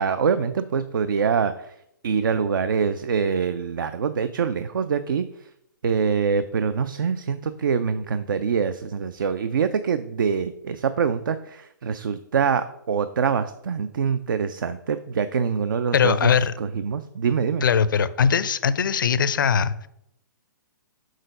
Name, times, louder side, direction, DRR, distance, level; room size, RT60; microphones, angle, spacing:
voice 1, 0.0-1.7 2.0-5.2 5.8-17.6, right 6 dB, 75° right, 11 dB, 0.5 m, -24 dB
voice 2, 15.9-16.5 17.6-19.9, left 7 dB, 75° left, 14 dB, 0.5 m, -21 dB
6.5 x 4.0 x 5.2 m, 0.76 s
hypercardioid pair, 130°, 11 cm